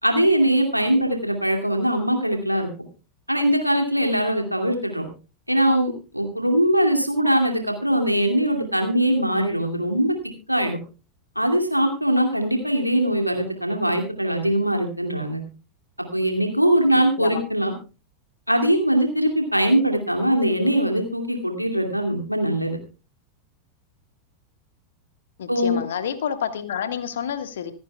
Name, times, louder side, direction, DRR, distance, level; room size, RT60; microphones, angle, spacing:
voice 1, 0.0-2.7 3.3-5.1 5.5-10.1 10.5-10.8 11.4-15.4 16.1-17.7 18.5-22.8 25.5-25.8, right 1 dB, 90° right, 3 dB, 2.4 m, -21 dB
voice 2, 17.0-17.4 25.4-27.7, left 8 dB, 60° left, 10 dB, 1.6 m, -29 dB
26.0 x 9.5 x 2.3 m, 0.33 s
figure-of-eight pair, 90°, 0 cm